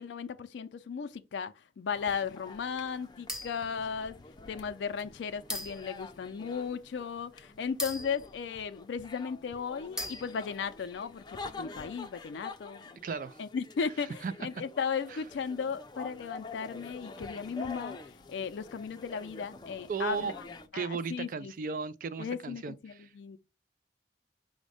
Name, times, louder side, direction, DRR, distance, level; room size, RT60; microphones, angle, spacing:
voice 1, 0.0-4.2 4.5-12.8 13.4-20.3 20.7-21.8 22.2-23.4, left 6 dB, 85° left, 0.4 m, -36 dB
sound 1, 1.9-20.7, left 3 dB, 25° left, 0.4 m, -47 dB
sound 2, 3.3-3.8 4.4-4.5 5.5-6.0 7.8-9.0 10.0-10.6, left 1 dB, 5° right, 0.8 m, -39 dB
voice 2, 13.0-13.4 14.2-14.3 15.1-15.2 19.9-20.3 20.7-23.1, right 5 dB, 50° right, 0.3 m, -35 dB
5.1 x 2.1 x 4.8 m
head